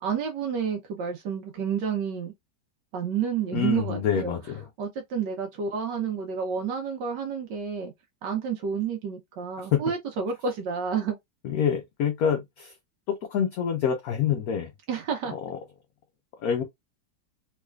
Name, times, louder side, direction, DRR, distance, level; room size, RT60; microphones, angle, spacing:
voice 1, 0.0-2.3 2.9-4.3 4.8-7.9 8.2-11.2 14.9-15.3, right 6 dB, 75° right, 1.3 m, -30 dB
voice 2, 3.5-4.6 9.7-9.8 11.4-12.8 13.1-14.7 15.3-15.6 16.4-16.6, left 8 dB, 65° left, 0.9 m, -26 dB
3.4 x 3.1 x 2.2 m
omnidirectional pair, 2.0 m